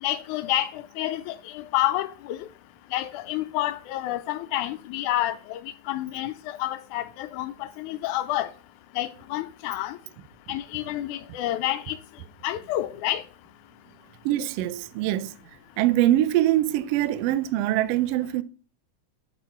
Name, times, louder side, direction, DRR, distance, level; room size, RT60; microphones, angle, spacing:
voice 1, 0.0-2.4 2.9-8.5 9.0-10.0 10.5-12.0 12.4-13.2, left 14 dB, 85° left, 2.1 m, -29 dB
voice 2, 14.2-15.3 15.8-18.4, right 14 dB, 85° right, 1.4 m, -23 dB
10.5 x 4.0 x 7.0 m
omnidirectional pair, 3.5 m